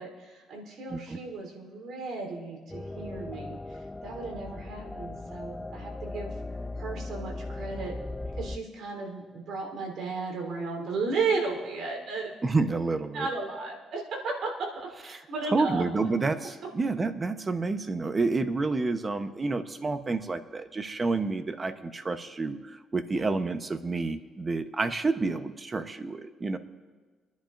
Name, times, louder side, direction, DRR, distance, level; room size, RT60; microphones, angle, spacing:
voice 1, 0.0-6.3 6.8-7.9 8.3-12.3 13.1-15.9 23.1-23.2, right 4 dB, 75° right, 1 dB, 3.5 m, -34 dB
sound 1, 2.7-8.6, left 2 dB, 10° left, 0.4 m, -38 dB
voice 2, 12.4-13.3 15.5-26.6, right 3 dB, 30° right, 10 dB, 0.8 m, -29 dB
28.5 x 10.5 x 2.6 m, 1.4 s
cardioid pair, 90°, 0 cm